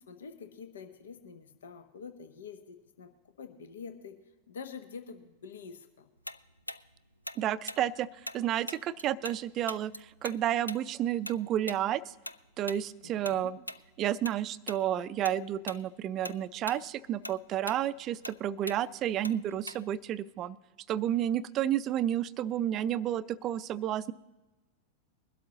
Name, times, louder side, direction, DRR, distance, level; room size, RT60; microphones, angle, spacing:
voice 1, 0.1-6.1 13.0-13.6, left 6 dB, 65° left, 9 dB, 0.9 m, -47 dB
Tick-tock, 6.3-9.4 9.7-14.4 14.7-14.9 15.2-15.8 16.1-20.1, left 1 dB, 85° left, 0.3 m, -42 dB
voice 2, 7.4-8.1 8.3-12.1 12.6-13.6 14.0-20.6 20.9-24.1, right 11 dB, 35° right, 17 dB, 0.4 m, -31 dB
22.0 x 12.5 x 2.9 m, 1.1 s
figure-of-eight pair, 90°, 0 cm